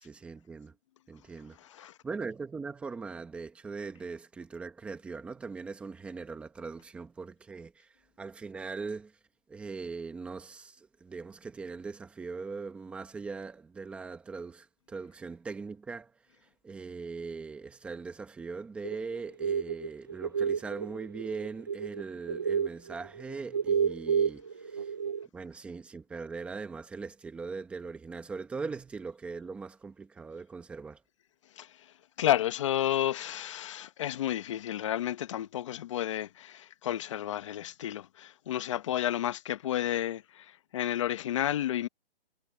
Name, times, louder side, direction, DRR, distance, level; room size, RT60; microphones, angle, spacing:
voice 1, 0.0-0.7 1.1-9.1 9.5-16.1 16.6-24.9 25.3-31.0, right 4 dB, 5° right, 1.1 m, -40 dB
voice 2, 1.6-2.0 31.6-41.9, left 12 dB, 30° left, 1.0 m, -31 dB
sound 1, 18.8-22.0 22.3-25.3, right 7 dB, 25° right, 0.4 m, -30 dB
hypercardioid pair, 170°, 31 cm